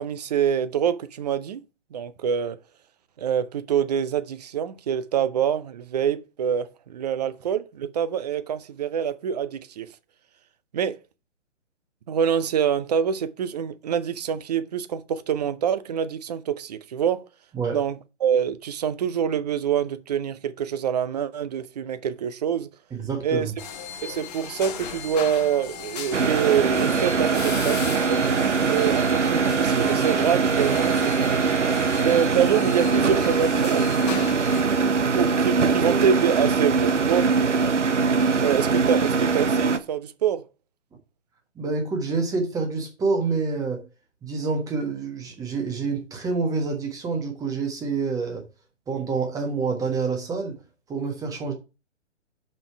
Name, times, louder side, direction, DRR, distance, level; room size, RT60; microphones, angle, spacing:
voice 1, 0.0-1.6 1.9-2.6 3.2-9.9 10.7-11.0 12.1-17.2 17.7-22.7 23.2-23.5 24.0-28.3 28.7-31.4 32.0-33.9 34.1-34.3 35.1-37.3 38.4-40.5, right 8 dB, 35° right, 0.6 m, -25 dB
voice 2, 22.9-23.5 41.5-43.9 44.2-48.4 48.9-50.6 50.9-51.5, right 4 dB, 10° right, 1.3 m, -27 dB
sound 1, 23.6-34.6, left 7 dB, 35° left, 1.1 m, -37 dB
sound 2, 26.1-39.8, right 5 dB, 75° right, 1.0 m, -22 dB
5.4 x 5.3 x 5.8 m
figure-of-eight pair, 130°, 36 cm